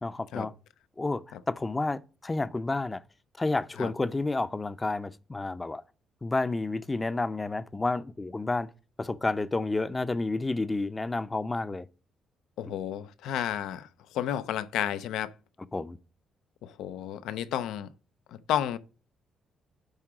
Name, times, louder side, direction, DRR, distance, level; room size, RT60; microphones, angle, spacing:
voice 1, 0.0-0.5 1.0-3.0 3.4-5.8 6.2-8.7 9.0-11.9 12.7-12.8 15.7-16.0, left 2 dB, 20° left, 0.6 m, -30 dB
voice 2, 12.6-13.9 14.1-15.3 16.6-17.9 18.3-18.8, left 11 dB, 85° left, 0.5 m, -31 dB
10.5 x 3.7 x 4.8 m
cardioid pair, 90°, 0 cm